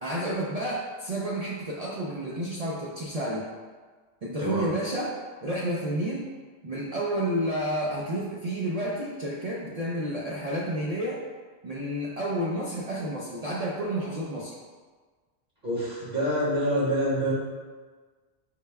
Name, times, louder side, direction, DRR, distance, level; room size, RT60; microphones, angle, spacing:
voice 1, 0.0-3.5 4.2-5.1 5.4-6.3 6.6-11.2 11.6-14.5, right 1 dB, 75° right, -5 dB, 0.3 m, -30 dB
voice 2, 4.4-4.7 15.6-17.3, equal, 40° right, -10 dB, 1.2 m, -26 dB
5.0 x 2.2 x 3.3 m, 1.4 s
omnidirectional pair, 1.2 m